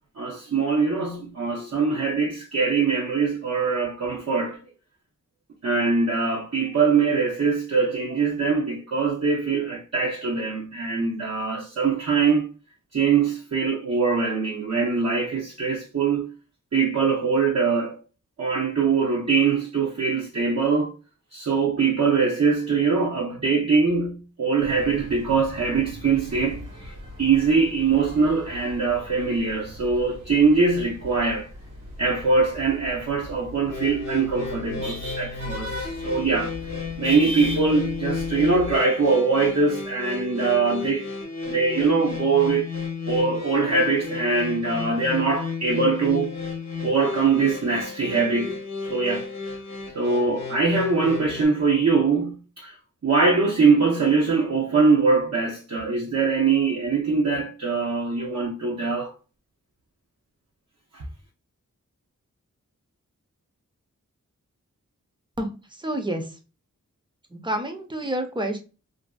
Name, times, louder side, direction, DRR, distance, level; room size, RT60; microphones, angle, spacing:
voice 1, 0.2-4.6 5.6-12.5 12.9-16.3 16.7-18.0 18.4-20.9 21.3-26.9 27.2-31.5 32.0-36.5 37.0-41.1 41.5-42.7 43.1-46.3 46.8-48.6 48.8-49.3 49.9-52.7 53.0-59.1 60.9-61.0, right 4 dB, 55° right, 0.6 m, -22 dB
sound 1, 24.6-38.8, left 1 dB, 80° right, 1.3 m, -39 dB
sound 2, 33.7-51.4, left 4 dB, 60° left, 0.7 m, -33 dB
voice 2, 65.8-66.3 67.3-68.6, right 1 dB, 15° right, 0.5 m, -28 dB
2.6 x 2.6 x 2.2 m
wide cardioid pair, 80°, 31 cm